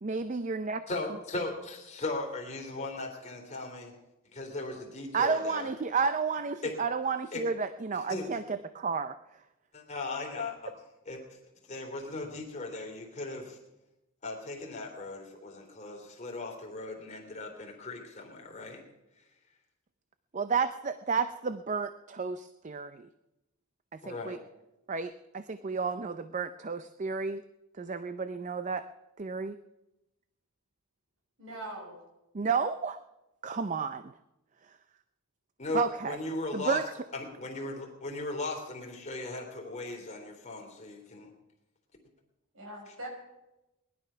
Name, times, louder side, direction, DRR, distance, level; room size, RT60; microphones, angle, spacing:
voice 1, 0.0-0.8 5.1-9.2 20.3-23.1 24.1-24.4 24.9-27.4 27.8-28.8 29.2-29.5 32.3-33.0 33.4-34.1 35.7-36.2 36.5-36.9, right 5 dB, 35° right, 12 dB, 0.5 m, -31 dB
voice 2, 0.9-3.9 4.3-5.7 6.6-6.7 7.3-7.4 8.1-8.3 9.7-10.7 11.0-11.2 11.7-13.6 14.2-18.8 24.0-24.4 35.6-36.8 37.1-41.3, left 2 dB, 35° left, 1 dB, 3.1 m, -37 dB
voice 3, 31.4-32.0 42.5-43.1, right 1 dB, 70° right, 0 dB, 5.7 m, -42 dB
19.5 x 11.5 x 5.6 m, 0.95 s
head